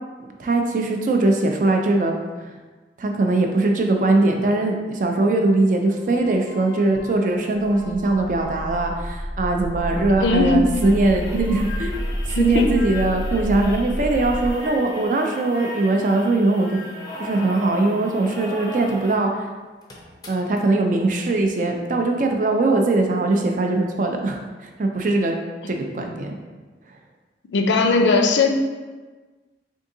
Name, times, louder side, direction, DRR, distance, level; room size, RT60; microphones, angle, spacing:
voice 1, 0.2-2.1 3.0-12.0 12.4-16.8 17.2-19.5 20.3-24.4 24.8-25.3 25.7-26.4, right 2 dB, 45° right, 3 dB, 0.4 m, -21 dB
sound 1, 5.9-9.2 9.6-13.4 14.2-17.2, left 3 dB, 25° right, 0.8 m, -43 dB
sound 2, 7.6-14.5, equal, 75° right, 1.2 m, -29 dB
voice 2, 10.2-10.7 12.3-12.8 27.5-28.5, left 3 dB, 85° left, 4 dB, 0.4 m, -18 dB
sound 3, 10.7-19.2 19.5-19.6 19.8-20.6 21.6-21.7, left 1 dB, 20° left, 0.5 m, -37 dB
3.7 x 3.5 x 2.6 m, 1.3 s
head